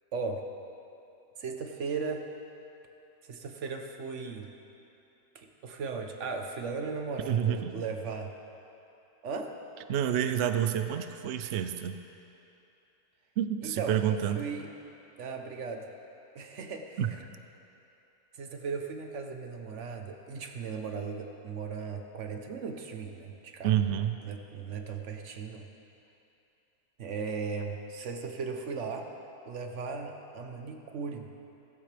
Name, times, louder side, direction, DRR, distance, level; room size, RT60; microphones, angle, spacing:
voice 1, 0.1-0.4 1.4-2.2 3.3-4.5 5.3-8.3 9.2-9.5 13.6-14.0 14.3-14.7 15.2-15.9 16.3-17.0 18.4-23.7 24.2-25.7 27.0-29.1 29.5-31.3, right 5 dB, 50° right, 4 dB, 1.1 m, -37 dB
voice 2, 7.3-7.8 9.9-12.0 13.4-14.5 17.0-17.1 23.6-24.2, right 10 dB, 80° right, 9 dB, 0.6 m, -28 dB
15.0 x 15.0 x 3.4 m, 2.8 s
omnidirectional pair, 1.7 m